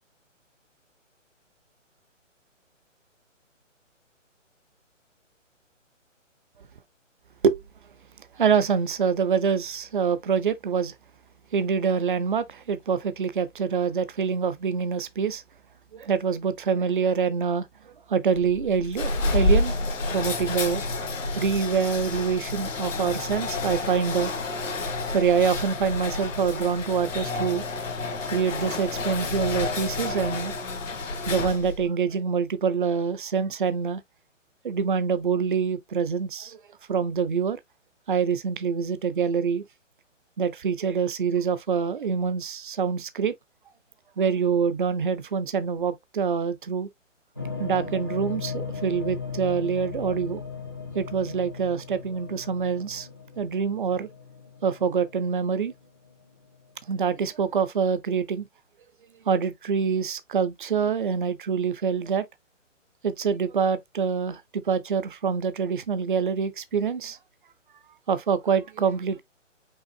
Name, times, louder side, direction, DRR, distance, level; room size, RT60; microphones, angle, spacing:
voice 1, 8.4-10.9 11.5-15.4 15.9-17.7 18.1-19.7 20.1-20.8 21.4-24.3 25.1-27.6 28.3-30.5 31.3-34.0 34.6-36.6 36.9-37.6 38.1-39.6 40.4-43.3 44.2-46.9 47.6-50.4 50.9-53.1 53.4-54.1 54.6-55.7 56.9-58.5 59.3-62.2 63.0-67.2 68.1-69.2, right 6 dB, 40° right, 0.6 m, -25 dB
sound 1, 18.4-31.9, left 2 dB, 85° left, 1.7 m, -29 dB
sound 2, 47.4-56.3, left 5 dB, 20° left, 0.5 m, -37 dB
5.5 x 3.4 x 2.5 m
hypercardioid pair, 165°, 38 cm